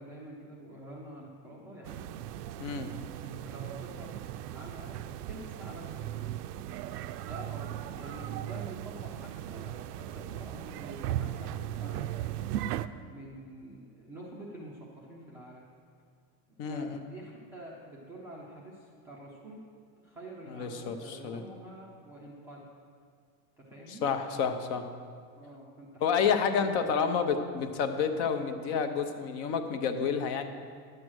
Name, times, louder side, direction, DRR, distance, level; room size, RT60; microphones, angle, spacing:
voice 1, 0.0-2.1 2.7-4.2 4.4-6.4 7.2-12.4 13.1-15.7 16.5-19.6 20.0-22.7 23.6-24.1 25.4-26.0 26.4-26.8, right 1 dB, 5° right, -6 dB, 0.4 m, -47 dB
sound 1, 1.8-12.9, right 12 dB, 90° right, 0.6 m, -37 dB
voice 2, 16.6-17.0 20.6-21.4 24.0-24.8 26.0-30.5, left 6 dB, 40° left, 7 dB, 0.8 m, -29 dB
10.5 x 7.6 x 6.2 m, 2.1 s
supercardioid pair, 170°, 47 cm